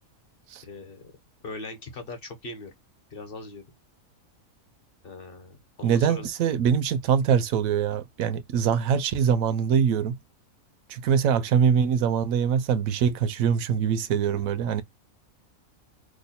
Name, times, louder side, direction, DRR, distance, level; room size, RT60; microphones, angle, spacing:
voice 1, 0.6-1.0 1.4-2.7 3.1-3.6 5.0-6.3, left 2 dB, 45° left, 0.9 m, -40 dB
voice 2, 5.8-10.2 10.9-14.8, right 7 dB, 80° right, 1.0 m, -23 dB
3.0 x 2.2 x 4.1 m
omnidirectional pair, 1.4 m